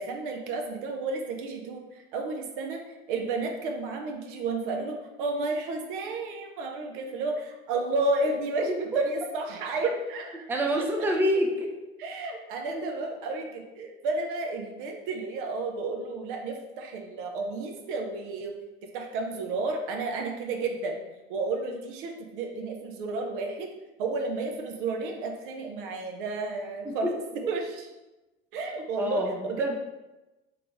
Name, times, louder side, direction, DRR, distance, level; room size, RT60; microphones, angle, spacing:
voice 1, 0.0-10.5 10.7-10.8 12.0-18.5 18.9-21.0 21.3-23.7 24.0-27.9 28.5-29.7, right 3 dB, 60° right, 3 dB, 0.7 m, -32 dB
voice 2, 10.5-11.7 12.7-12.8 29.0-29.3 29.6-29.7, equal, 5° right, 1 dB, 0.5 m, -26 dB
3.8 x 3.3 x 3.5 m, 1.0 s
figure-of-eight pair, 70°, 30 cm